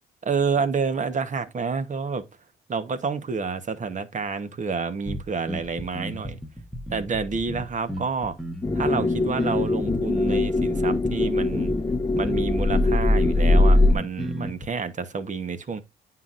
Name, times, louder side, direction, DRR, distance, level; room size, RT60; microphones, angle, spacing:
voice 1, 0.2-2.2 2.7-6.4 6.9-8.3 8.7-11.7 12.2-15.8, right 5 dB, 40° right, 1.0 m, -29 dB
sound 1, 5.1-14.7, equal, ahead, 1.2 m, -34 dB
sound 2, 8.6-13.9, left 2 dB, 15° left, 0.6 m, -21 dB
9.2 x 5.8 x 2.5 m
cardioid pair, 90°, 20 cm